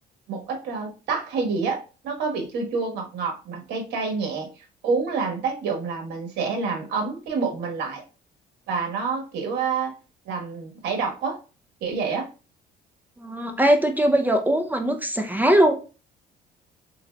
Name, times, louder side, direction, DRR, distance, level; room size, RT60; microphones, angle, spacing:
voice 1, 0.3-8.0 8.7-9.9 10.2-11.4 11.8-12.3, right 4 dB, 80° right, 3 dB, 1.2 m, -28 dB
voice 2, 13.2-15.7, right 1 dB, 10° right, 5 dB, 0.5 m, -20 dB
3.9 x 3.9 x 2.2 m, 0.33 s
cardioid pair, 110°, 17 cm